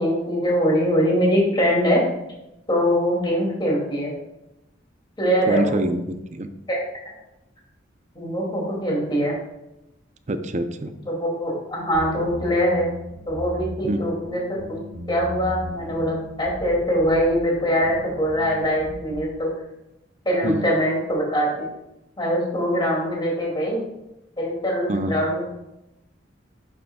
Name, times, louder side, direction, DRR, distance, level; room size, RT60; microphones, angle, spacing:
voice 1, 0.0-2.0 2.7-4.1 5.2-5.8 6.7-6.8 8.1-9.4 11.0-12.9 13.3-14.8 15.1-19.5 20.2-21.7 22.2-23.8 24.4-25.4, equal, 25° left, -3 dB, 2.7 m, -22 dB
voice 2, 5.5-6.5 10.3-10.9 13.8-14.0 20.4-20.7 24.9-25.2, right 1 dB, 40° right, 8 dB, 0.6 m, -25 dB
sound 1, 11.9-19.3, right 1 dB, 65° right, 1.0 m, -38 dB
11.5 x 6.9 x 2.4 m, 0.89 s
head